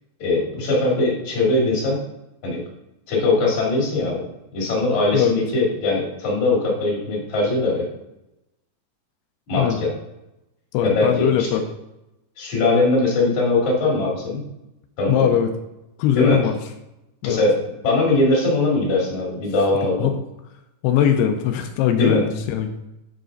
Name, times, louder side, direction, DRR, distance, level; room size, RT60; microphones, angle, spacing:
voice 1, 0.2-2.0 2.4-2.6 3.1-4.2 4.5-7.9 9.5-9.9 10.8-11.5 12.4-14.4 15.0-15.3 16.2-16.4 17.2-20.1 22.0-22.2, left 2 dB, 50° left, -3 dB, 3.0 m, -21 dB
voice 2, 10.7-11.6 15.1-15.5 16.0-16.5 17.2-17.4 20.0-20.2 20.8-22.8, left 9 dB, 90° left, 5 dB, 2.3 m, -20 dB
8.0 x 4.9 x 3.8 m, 0.92 s
omnidirectional pair, 5.2 m